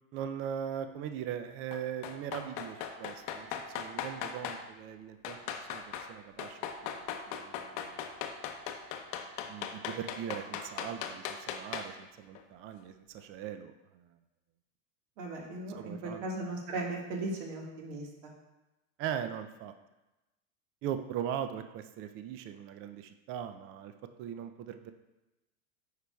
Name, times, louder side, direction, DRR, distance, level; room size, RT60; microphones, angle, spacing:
voice 1, 0.1-3.5 3.8-5.8 6.1-8.0 9.5-14.0 15.8-16.3 19.0-19.7 20.8-23.9 24.2-24.9, right 9 dB, 35° right, 9 dB, 0.4 m, -40 dB
sound 1, 1.7-4.6 5.2-6.1 6.4-12.0 12.3-12.4, left 8 dB, 60° left, 0.8 m, -38 dB
voice 2, 15.2-18.3, right 2 dB, 65° right, 0 dB, 1.6 m, -37 dB
9.3 x 4.7 x 2.3 m, 1.0 s
hypercardioid pair, 105°, 41 cm